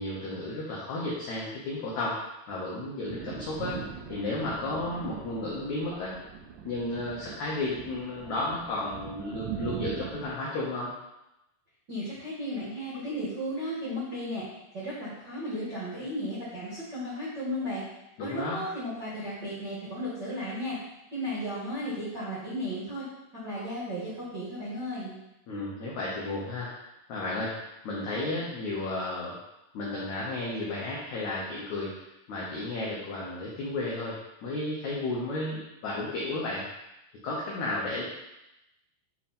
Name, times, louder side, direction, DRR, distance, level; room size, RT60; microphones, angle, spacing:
voice 1, 0.0-3.8 4.1-6.1 6.6-10.9 18.2-18.6 25.5-26.7 27.1-27.6 27.8-29.4 29.7-34.1 34.4-36.6 37.2-38.0, left 2 dB, 80° left, -5 dB, 1.6 m, -33 dB
Thunder, 3.1-10.3, right 7 dB, 80° right, 2.0 m, -41 dB
voice 2, 11.9-14.5 14.7-17.8 18.2-20.8 21.1-23.0 23.3-25.2, equal, 45° right, -10 dB, 1.4 m, -34 dB
7.3 x 3.5 x 4.3 m, 0.90 s
omnidirectional pair, 4.7 m